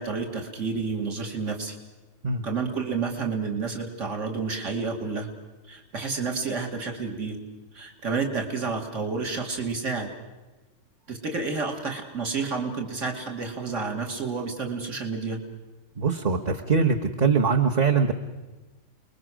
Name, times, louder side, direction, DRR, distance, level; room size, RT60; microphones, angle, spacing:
voice 1, 0.0-1.8 2.4-5.3 5.7-7.4 7.7-10.1 11.1-15.4, right 4 dB, 60° right, 3 dB, 2.9 m, -30 dB
voice 2, 16.0-18.1, right 5 dB, 35° right, 2 dB, 1.1 m, -22 dB
29.0 x 21.5 x 6.3 m, 1.2 s
omnidirectional pair, 1.5 m